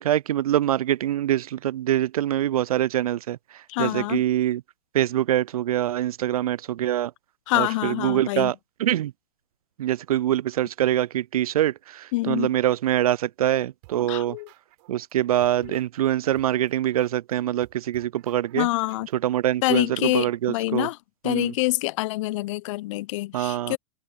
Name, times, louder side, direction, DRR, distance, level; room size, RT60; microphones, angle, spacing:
voice 1, 0.0-4.6 4.9-7.1 7.5-8.5 8.8-9.1 9.8-14.4 14.9-18.7 19.1-20.9 21.2-21.5 23.3-23.8, right 12 dB, 70° right, 0.6 m, -24 dB
voice 2, 3.7-4.2 7.5-8.5 12.1-12.5 14.1-14.5 15.6-15.8 18.5-19.1 19.6-21.0 21.2-23.8, left 20 dB, 55° left, 1.1 m, -26 dB
sound 1, 13.8-15.1 15.4-19.1, right 31 dB, 50° right, 7.7 m, -54 dB
hypercardioid pair, 100°, 19 cm